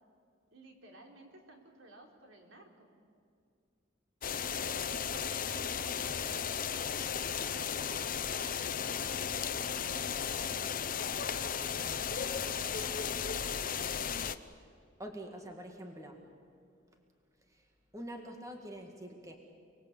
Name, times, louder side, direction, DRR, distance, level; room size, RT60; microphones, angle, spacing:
voice 1, 0.5-2.9 4.2-8.6 9.4-10.9 11.4-12.3, right 1 dB, 75° right, 2 dB, 4.0 m, -55 dB
sound 1, 4.2-14.4, left 7 dB, 45° left, 0.8 m, -35 dB
voice 2, 15.0-16.3 17.4-19.4, right 1 dB, 15° right, 3 dB, 2.1 m, -46 dB
30.0 x 21.0 x 8.4 m, 2.4 s
head